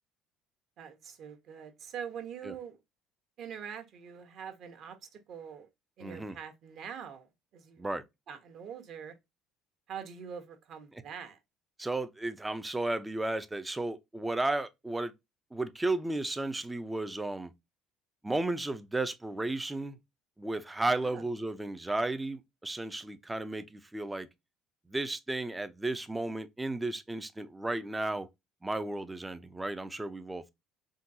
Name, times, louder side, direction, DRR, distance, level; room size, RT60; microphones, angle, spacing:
voice 1, 0.8-2.8 3.4-5.7 6.0-7.9 8.3-9.1 9.9-11.4 21.0-21.2, right 7 dB, 50° right, 0.9 m, -44 dB
voice 2, 6.0-6.4 7.8-8.0 11.8-15.1 15.5-17.5 18.2-20.0 20.4-24.3 24.9-28.3 28.6-30.5, right 2 dB, 10° right, 0.4 m, -34 dB
3.7 x 2.3 x 2.6 m
cardioid pair, 135°, 0 cm